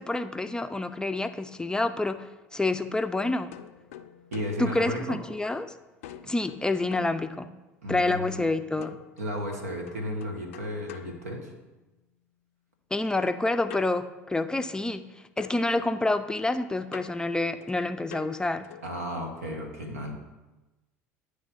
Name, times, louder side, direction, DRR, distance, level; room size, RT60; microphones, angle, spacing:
voice 1, 0.0-2.2 2.5-3.5 4.6-5.7 6.2-7.5 7.9-9.0 12.9-15.0 15.4-18.7, left 2 dB, 10° left, 9 dB, 0.4 m, -28 dB
sound 1, 3.5-5.6 6.0-7.9 8.8-12.0 13.7-15.1 15.4-19.0, left 11 dB, 70° left, 0.4 m, -48 dB
voice 2, 4.3-5.2 7.8-8.5 9.2-11.5 18.8-20.1, equal, 80° right, 3 dB, 1.2 m, -34 dB
9.8 x 3.4 x 5.3 m, 1.1 s
figure-of-eight pair, 65°, 8 cm